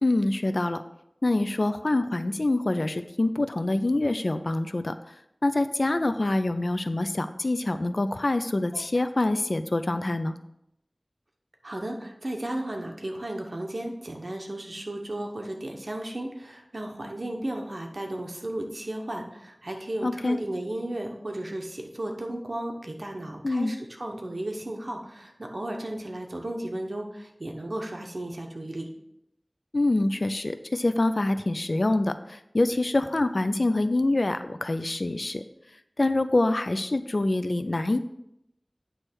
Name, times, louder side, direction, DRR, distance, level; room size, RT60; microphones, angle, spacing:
voice 1, 0.0-0.8 1.2-5.1 5.4-10.3 20.0-20.4 23.4-23.7 29.7-35.4 36.0-38.0, left 2 dB, 75° left, 10 dB, 0.5 m, -25 dB
voice 2, 11.6-28.9, right 1 dB, 70° right, 2 dB, 1.1 m, -34 dB
9.1 x 3.3 x 6.2 m, 0.81 s
wide cardioid pair, 40°, 0 cm